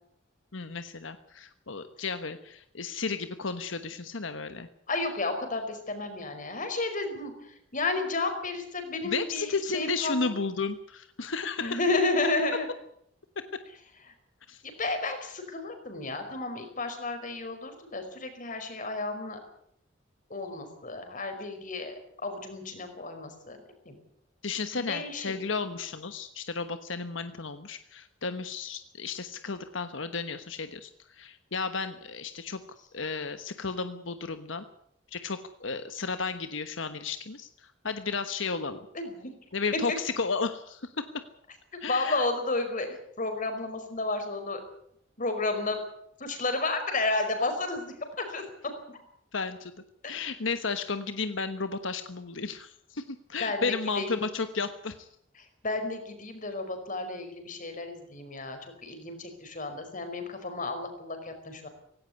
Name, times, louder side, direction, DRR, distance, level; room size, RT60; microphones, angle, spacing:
voice 1, 0.5-4.7 9.0-11.8 14.5-14.6 24.4-32.6 32.9-34.6 35.1-37.5 37.8-38.9 39.5-41.1 41.8-42.3 49.3-49.7 50.1-55.1, left 4 dB, 85° left, 10 dB, 1.2 m, -33 dB
voice 2, 4.9-10.3 11.6-12.7 14.6-19.4 20.3-23.6 23.8-24.0 24.7-25.4 38.9-39.3 39.9-40.0 41.9-44.6 45.2-45.8 46.2-48.4 48.9-49.0 50.0-50.2 53.4-54.2 55.3-61.7, left 2 dB, 45° left, 7 dB, 5.0 m, -32 dB
17.5 x 17.5 x 9.7 m, 0.72 s
head